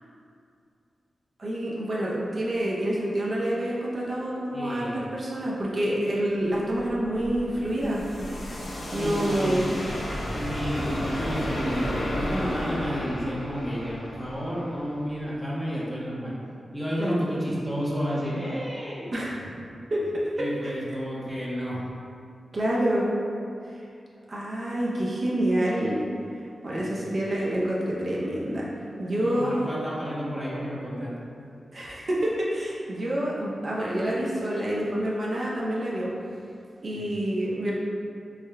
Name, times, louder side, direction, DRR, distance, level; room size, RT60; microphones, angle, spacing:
voice 1, 1.4-8.7 8.9-9.8 17.0-17.2 19.1-19.4 19.9-20.1 20.4-20.7 22.5-23.1 23.7-23.8 24.3-26.0 26.6-28.7 29.0-29.7 31.7-36.1 36.8-37.7, right 1 dB, 45° right, -6 dB, 0.5 m, -27 dB
voice 2, 4.5-5.0 9.0-9.7 10.3-16.3 16.7-19.1 20.4-21.9 26.7-27.2 29.2-31.4 36.9-37.2, equal, 5° left, -6 dB, 0.5 m, -31 dB
sound 1, 6.6-15.4, left 1 dB, 70° left, 0.6 m, -33 dB
3.5 x 2.1 x 3.2 m, 2.5 s
wide cardioid pair, 125°, 0 cm